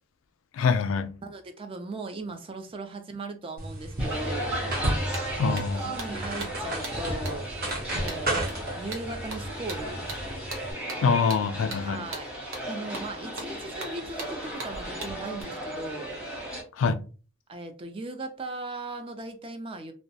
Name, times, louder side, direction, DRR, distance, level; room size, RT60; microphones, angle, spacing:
voice 1, 0.5-1.2 5.4-6.0 11.0-12.0 16.8-17.0, left 5 dB, 90° left, 0.3 m, -25 dB
voice 2, 1.2-4.6 5.5-5.6 5.9-7.5 7.9-10.1 11.8-12.3 12.7-16.2 17.5-19.9, right 3 dB, 30° right, 0.3 m, -38 dB
sound 1, 3.6-10.7, right 1 dB, 50° right, 0.7 m, -33 dB
sound 2, 4.0-16.6, right 1 dB, 5° right, 0.8 m, -36 dB
sound 3, 4.7-4.8 5.1-15.4, right 3 dB, 80° right, 0.7 m, -41 dB
2.2 x 2.0 x 2.7 m
head